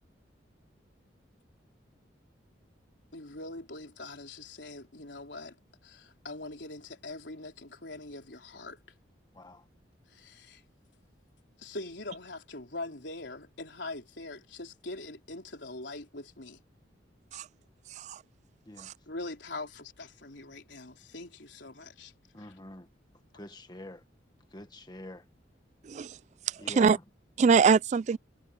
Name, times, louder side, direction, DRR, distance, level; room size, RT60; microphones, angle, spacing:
voice 1, 3.1-5.6 5.8-8.8 10.1-10.6 11.6-16.6 19.1-22.1 22.4-22.5, left 2 dB, 70° left, 3.9 m, -42 dB
voice 2, 9.3-9.6 18.6-18.9 22.3-22.9 23.3-24.0 24.5-25.2 26.6-27.0, left 1 dB, 25° left, 1.7 m, -45 dB
voice 3, 25.8-26.2 26.8-27.0 27.4-28.2, right 5 dB, 40° right, 0.3 m, -23 dB
head